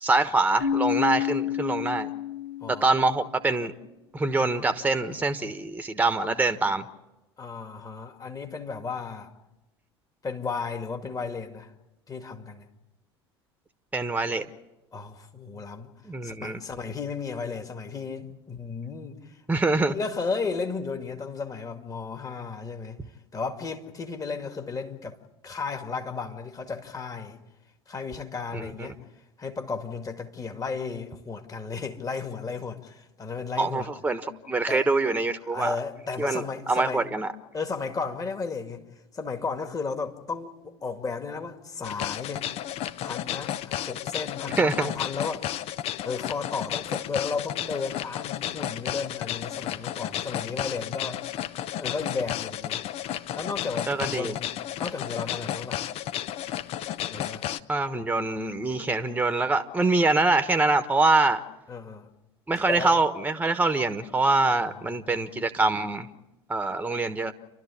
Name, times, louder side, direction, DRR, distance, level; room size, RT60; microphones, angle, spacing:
voice 1, 0.0-2.1 2.7-3.7 4.1-6.8 13.9-14.5 16.0-16.6 19.5-19.9 28.5-28.9 33.6-35.7 36.2-37.3 44.6-44.9 53.9-54.4 57.7-61.4 62.5-66.1 66.5-67.3, right 3 dB, 10° right, 1.3 m, -25 dB
Keyboard (musical), 0.6-3.2, left 10 dB, 65° left, 1.5 m, -29 dB
voice 2, 7.4-9.3 10.2-11.7 12.1-12.7 14.9-15.9 16.2-19.2 19.9-23.0 23.3-25.2 25.4-27.4 27.9-29.0 29.4-33.9 34.7-34.9 35.5-37.0 37.5-38.8 39.1-42.5 43.0-45.5 46.0-51.2 51.8-52.8 53.4-55.8 57.1-57.5 61.7-62.1 62.6-63.0 64.6-65.3, left 4 dB, 25° left, 2.1 m, -34 dB
sound 1, 41.8-57.6, left 12 dB, 45° left, 0.7 m, -33 dB
29.0 x 12.5 x 8.6 m
figure-of-eight pair, 70°, 14 cm